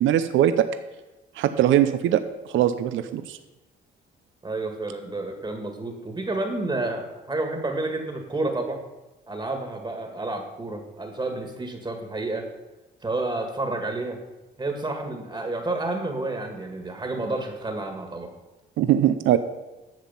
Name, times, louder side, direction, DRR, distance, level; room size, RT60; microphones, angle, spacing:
voice 1, 0.0-0.7 1.4-2.2 2.5-3.4 18.8-19.4, right 11 dB, 80° right, 10 dB, 0.6 m, -21 dB
voice 2, 4.4-8.8 9.3-12.4 13.0-14.2 14.6-18.3, right 2 dB, 25° right, 4 dB, 1.7 m, -30 dB
11.0 x 7.2 x 5.6 m, 1.0 s
cardioid pair, 90°, 20 cm